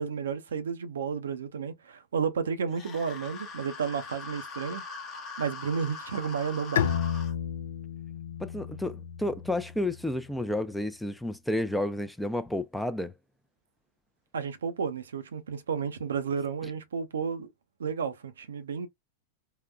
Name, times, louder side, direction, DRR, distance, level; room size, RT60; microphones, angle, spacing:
voice 1, 0.0-4.8 5.4-6.9 14.3-17.5 17.8-18.9, right 6 dB, 85° right, 0.5 m, -32 dB
sound 1, 2.7-7.3, left 4 dB, 35° left, 0.8 m, -42 dB
Bowed string instrument, 6.8-10.2, left 8 dB, 85° left, 0.4 m, -32 dB
voice 2, 8.4-13.1, left 1 dB, 5° left, 0.4 m, -31 dB
3.7 x 2.2 x 2.3 m
hypercardioid pair, 105°, 0 cm